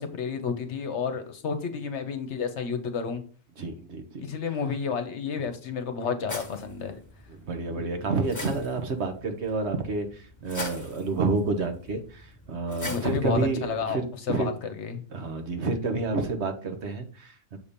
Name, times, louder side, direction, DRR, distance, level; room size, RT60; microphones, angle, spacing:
voice 1, 0.0-3.2 4.2-7.0 12.9-14.0 14.3-15.0, left 5 dB, 65° left, 8 dB, 1.1 m, -31 dB
voice 2, 3.6-4.2 7.3-14.5 15.1-17.6, right 3 dB, 60° right, 6 dB, 1.2 m, -29 dB
sound 1, 6.3-13.8, left 2 dB, 15° left, 1.4 m, -42 dB
7.1 x 2.8 x 5.1 m, 0.40 s
omnidirectional pair, 1.3 m